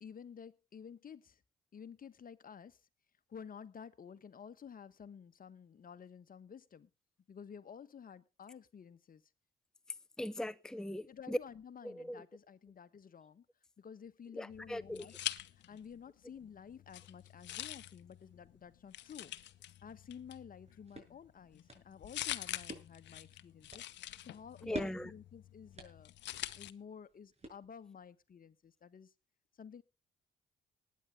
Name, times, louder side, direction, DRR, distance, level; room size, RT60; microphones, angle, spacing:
voice 1, 0.0-1.4 1.7-2.8 3.3-6.9 7.3-9.2 11.0-13.4 13.8-15.1 15.7-19.3 19.8-26.1 26.6-29.1 29.6-29.8, left 7 dB, 45° left, 1.3 m, -52 dB
voice 2, 10.2-11.4 11.8-12.2 14.3-15.1 24.7-25.1, left 1 dB, 5° left, 0.7 m, -39 dB
sound 1, 14.5-16.0 16.3-26.7, left 14 dB, 70° left, 0.8 m, -46 dB
sound 2, 20.4-28.0, right 2 dB, 35° right, 6.4 m, -51 dB
20.0 x 9.6 x 3.5 m
hypercardioid pair, 50°, 19 cm